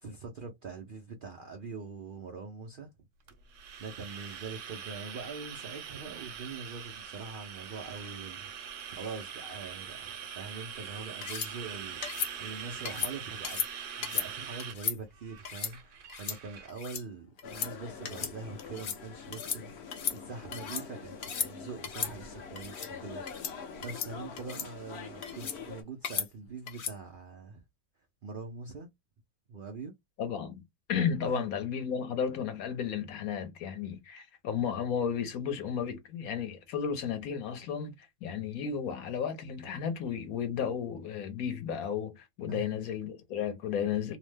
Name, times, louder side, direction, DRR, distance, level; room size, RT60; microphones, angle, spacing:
voice 1, 0.0-2.9 3.8-8.5 9.0-12.0 12.4-13.7 14.0-27.6 28.2-28.9 29.5-29.9 31.2-31.5 42.5-42.8, right 4 dB, 85° right, 0.4 m, -43 dB
sound 1, 3.3-16.7, right 8 dB, 65° right, 0.9 m, -43 dB
sound 2, 11.2-11.5 12.0-12.3 12.9-13.1 13.4-13.7 14.0-14.3 14.6-15.0 15.4-15.7 16.1-16.4 16.7-17.0 17.4-17.7 18.0-18.3 18.6-19.0 19.3-19.6 19.9-20.8 21.2-21.5 21.8-22.1 22.6-22.9 23.3-23.5 23.8-24.1 24.4-24.7 25.2-25.6 26.0-26.3 26.7-27.0, left 7 dB, 90° left, 0.4 m, -35 dB
sound 3, 17.4-25.8, left 5 dB, 55° left, 0.8 m, -45 dB
voice 2, 30.2-30.6 30.9-44.2, left 7 dB, 70° left, 1.1 m, -33 dB
2.8 x 2.1 x 3.2 m
omnidirectional pair, 1.6 m